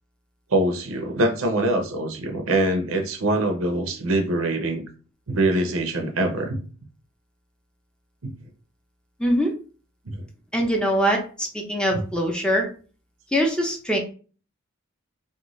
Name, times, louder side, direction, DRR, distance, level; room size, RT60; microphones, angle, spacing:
voice 1, 0.5-4.8 5.3-6.6 8.2-8.3 10.1-10.2, right 1 dB, 90° right, 4 dB, 0.7 m, -24 dB
voice 2, 9.2-9.5 10.5-12.7 13.3-14.0, equal, 5° left, 2 dB, 0.5 m, -23 dB
2.5 x 2.2 x 3.0 m, 0.38 s
head